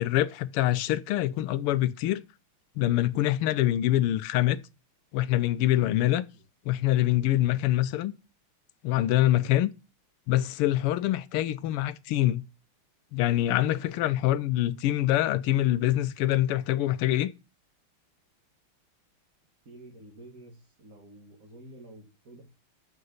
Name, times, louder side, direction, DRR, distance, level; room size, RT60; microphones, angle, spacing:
voice 1, 0.0-2.2 2.8-4.6 5.1-6.2 6.6-8.1 8.8-9.7 10.3-12.5 13.1-17.3, left 14 dB, 90° left, 1.6 m, -25 dB
voice 2, 19.6-22.4, right 1 dB, 40° right, 2.2 m, -49 dB
6.6 x 6.5 x 7.1 m
omnidirectional pair, 2.4 m